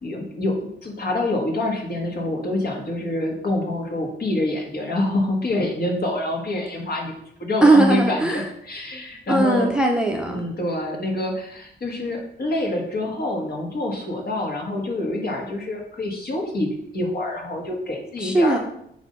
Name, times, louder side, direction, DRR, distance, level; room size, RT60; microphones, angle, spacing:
voice 1, 0.0-7.1 7.4-9.7 10.3-18.6, left 1 dB, 50° left, 1 dB, 1.7 m, -26 dB
voice 2, 7.6-8.5 9.3-10.4 18.2-18.6, right 2 dB, 5° right, 2 dB, 0.7 m, -18 dB
7.2 x 2.7 x 5.4 m, 0.72 s
cardioid pair, 100°, 20 cm